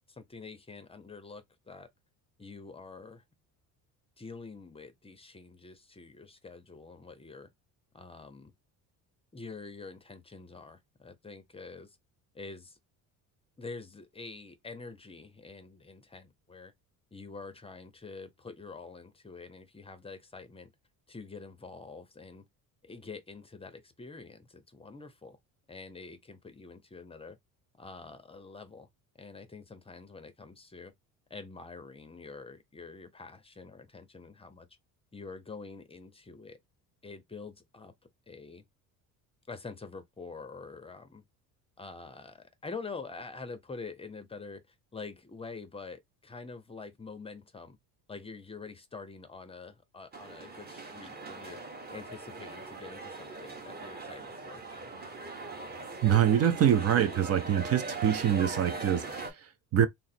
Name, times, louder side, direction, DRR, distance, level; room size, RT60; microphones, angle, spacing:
voice 1, 0.1-1.9 2.4-3.2 4.2-7.5 7.9-8.5 9.3-12.0 12.3-12.8 13.6-16.7 17.1-20.7 21.1-22.4 22.8-25.4 25.7-27.4 27.8-28.9 29.1-30.9 31.3-34.7 35.1-36.6 37.0-37.9 38.3-38.6 39.5-41.2 41.8-47.8 48.1-54.6, left 4 dB, 15° left, 0.6 m, -46 dB
sound 1, 50.1-59.3, right 3 dB, 25° right, 1.3 m, -41 dB
voice 2, 56.0-59.9, right 9 dB, 45° right, 0.5 m, -25 dB
3.7 x 2.0 x 4.1 m
cardioid pair, 110°, 36 cm